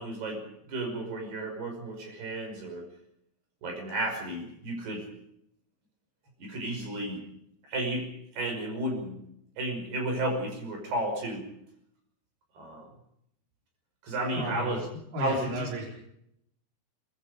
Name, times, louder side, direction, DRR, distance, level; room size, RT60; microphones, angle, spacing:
voice 1, 0.0-2.9 3.6-5.1 6.4-7.2 7.6-9.2 9.6-11.5 12.6-12.9 14.0-14.8 15.2-15.7, right 1 dB, 65° right, 4 dB, 7.6 m, -33 dB
voice 2, 14.3-14.8 15.1-15.9, right 1 dB, 50° right, -1 dB, 6.3 m, -33 dB
23.5 x 23.0 x 5.1 m, 0.74 s
omnidirectional pair, 5.1 m